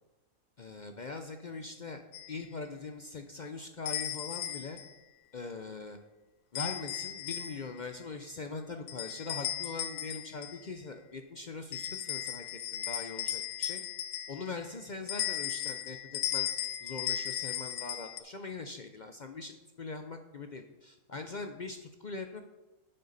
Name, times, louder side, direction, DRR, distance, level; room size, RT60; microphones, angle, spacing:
voice 1, 0.6-2.0 2.3-4.8 5.3-6.0 6.5-13.8 14.3-16.5 16.8-22.4, left 4 dB, 50° left, 6 dB, 0.5 m, -42 dB
sound 1, 2.1-2.3 3.9-4.9 6.5-7.8 8.9-10.7 11.7-14.6 15.1-18.2, left 11 dB, 75° left, 1.0 m, -36 dB
9.2 x 7.7 x 4.0 m, 1.0 s
omnidirectional pair, 1.5 m